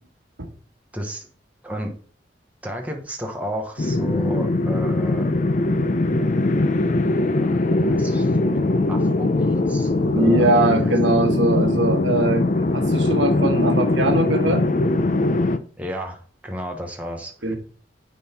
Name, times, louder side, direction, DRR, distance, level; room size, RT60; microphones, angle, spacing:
voice 1, 0.9-1.3 1.6-1.9 2.6-5.3 7.8-10.5 10.7-11.4 15.8-17.6, equal, 10° right, 1.1 m, -33 dB
sound 1, 3.8-15.6, left 2 dB, 45° left, 0.6 m, -21 dB
voice 2, 10.1-14.7 17.4-17.6, right 1 dB, 85° right, 1.4 m, -21 dB
10.0 x 4.0 x 4.3 m
head